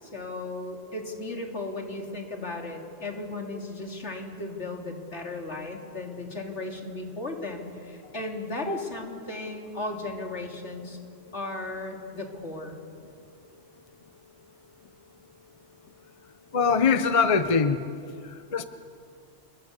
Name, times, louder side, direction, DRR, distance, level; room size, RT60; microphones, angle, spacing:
voice 1, 0.0-11.0 11.3-12.8, left 2 dB, 75° left, 2 dB, 3.3 m, -35 dB
voice 2, 16.5-17.9 18.2-18.7, left 5 dB, 30° left, 10 dB, 0.9 m, -23 dB
27.5 x 21.0 x 8.2 m, 2.4 s
omnidirectional pair, 1.2 m